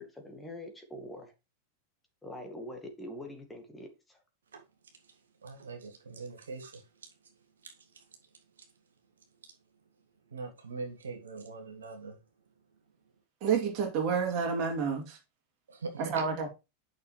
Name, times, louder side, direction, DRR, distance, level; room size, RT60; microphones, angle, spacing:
voice 1, 0.0-1.3 2.2-4.2, left 1 dB, 10° left, 2.1 m, -44 dB
voice 2, 5.4-6.8 7.6-7.7 10.3-12.2 15.7-16.0, right 3 dB, 70° right, 1.5 m, -42 dB
voice 3, 13.4-15.2 16.0-16.5, right 6 dB, 40° right, 2.7 m, -29 dB
9.5 x 6.4 x 3.2 m
figure-of-eight pair, 90°, 0 cm